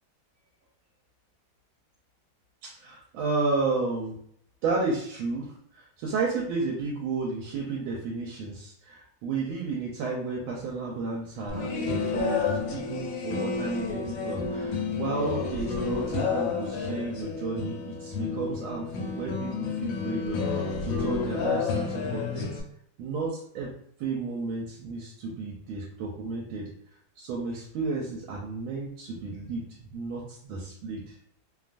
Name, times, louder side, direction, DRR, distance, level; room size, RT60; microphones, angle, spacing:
voice 1, 2.6-4.2 4.6-22.6 23.0-23.7 24.0-26.7 27.2-31.1, right 3 dB, 85° right, -3 dB, 1.4 m, -32 dB
sound 1, 11.5-22.6, left 5 dB, 75° left, 1.3 m, -30 dB
3.3 x 2.3 x 2.5 m, 0.66 s
omnidirectional pair, 2.2 m